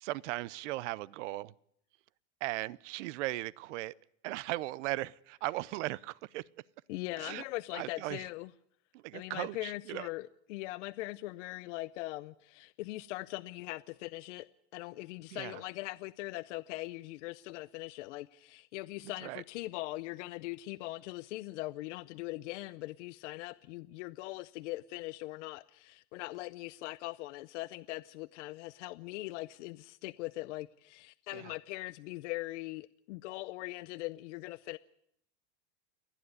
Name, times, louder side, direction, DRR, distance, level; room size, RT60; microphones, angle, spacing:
voice 1, 0.0-1.5 2.4-3.9 4.2-6.4 7.2-7.4 7.7-8.2 9.0-10.1 15.3-15.6 19.2-19.4 31.3-31.4, right 18 dB, 80° right, 0.7 m, -37 dB
voice 2, 6.9-8.5 9.1-34.8, left 19 dB, 80° left, 0.7 m, -41 dB
28.5 x 10.0 x 9.5 m
supercardioid pair, 145°, 35 cm